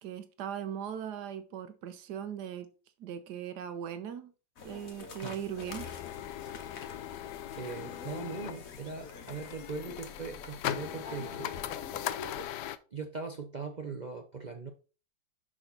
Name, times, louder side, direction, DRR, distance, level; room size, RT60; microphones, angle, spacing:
voice 1, 0.0-2.7 3.0-4.3 4.6-5.9, right 9 dB, 80° right, 1.5 m, -39 dB
sound 1, 4.6-12.5, left 4 dB, 60° left, 1.5 m, -47 dB
sound 2, 5.7-12.8, left 12 dB, 90° left, 1.2 m, -40 dB
voice 2, 6.9-7.3 7.6-11.8 12.9-14.7, right 4 dB, 45° right, 0.5 m, -40 dB
6.3 x 6.3 x 4.0 m
omnidirectional pair, 1.8 m